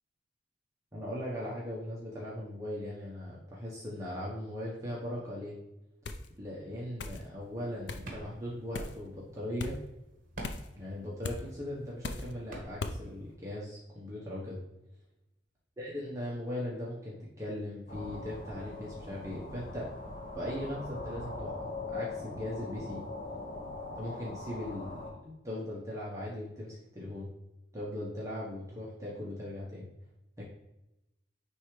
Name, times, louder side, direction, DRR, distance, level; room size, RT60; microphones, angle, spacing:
voice 1, 0.9-5.5 6.4-9.8 10.8-14.6 15.8-19.9 20.3-21.5 21.9-23.0 24.0-27.3 27.7-29.9 30.4-30.5, left 1 dB, 15° right, -6 dB, 1.1 m, -39 dB
sound 1, 6.0-6.3 7.0-7.2 7.9-8.1 8.7-9.0 9.6-9.8 10.4-10.7 11.2-11.4 12.0-12.3 12.8-13.0, left 3 dB, 65° left, 0.5 m, -37 dB
sound 2, 7.4-13.3, right 1 dB, 50° right, 1.4 m, -50 dB
sound 3, 17.9-25.1, left 2 dB, 50° left, 1.1 m, -41 dB
9.5 x 3.5 x 3.2 m, 0.93 s
head